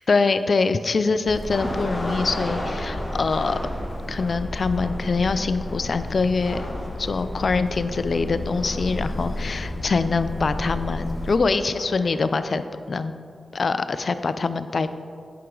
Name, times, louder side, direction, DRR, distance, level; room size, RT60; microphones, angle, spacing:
voice 1, 0.0-3.6 4.1-6.7 7.0-12.6 12.9-13.1 13.5-14.9, left 4 dB, 60° left, 11 dB, 0.4 m, -24 dB
sound 1, 1.3-11.4, left 1 dB, 45° left, 0.8 m, -32 dB
sound 2, 1.5-12.6, left 1 dB, 25° left, 2.1 m, -36 dB
9.4 x 5.9 x 3.8 m, 2.3 s
cardioid pair, 45°, 0 cm